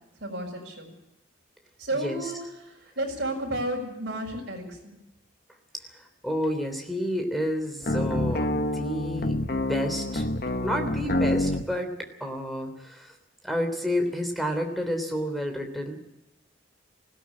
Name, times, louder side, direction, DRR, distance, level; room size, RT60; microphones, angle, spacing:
voice 1, 0.2-0.9 1.8-5.0, right 1 dB, 55° right, -1 dB, 6.5 m, -32 dB
voice 2, 1.9-2.3 6.2-10.3 10.6-13.1 13.4-16.1, equal, ahead, 5 dB, 3.3 m, -30 dB
sound 1, 7.8-11.7, left 1 dB, 50° left, 1.2 m, -27 dB
20.0 x 17.0 x 8.7 m, 0.94 s
head